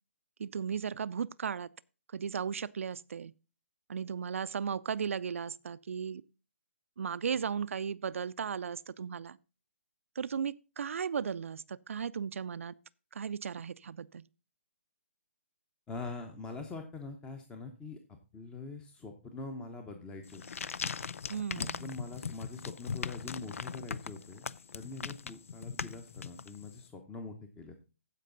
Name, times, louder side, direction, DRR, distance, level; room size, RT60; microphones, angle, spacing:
voice 1, 0.4-1.7 2.1-3.3 3.9-6.2 7.0-9.4 10.2-12.7 13.1-14.3 21.3-21.8, right 7 dB, 70° right, 0.5 m, -36 dB
voice 2, 15.9-18.0 18.3-20.4 21.6-24.5 24.7-27.7, left 3 dB, 10° left, 0.9 m, -44 dB
sound 1, 20.2-26.8, left 6 dB, 75° left, 0.5 m, -40 dB
15.0 x 5.3 x 3.8 m
hypercardioid pair, 150°, 8 cm